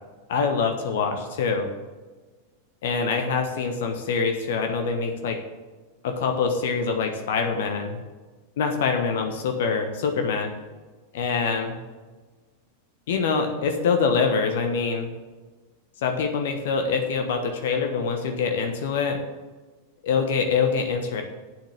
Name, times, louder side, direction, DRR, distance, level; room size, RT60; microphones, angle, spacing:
voice 1, 0.3-1.7 2.8-5.4 6.0-8.0 8.6-10.5 11.1-11.8 13.1-15.1 16.0-19.2 20.0-21.2, left 5 dB, 55° left, 5 dB, 1.2 m, -25 dB
8.9 x 7.3 x 7.5 m, 1.3 s
figure-of-eight pair, 90°, 0 cm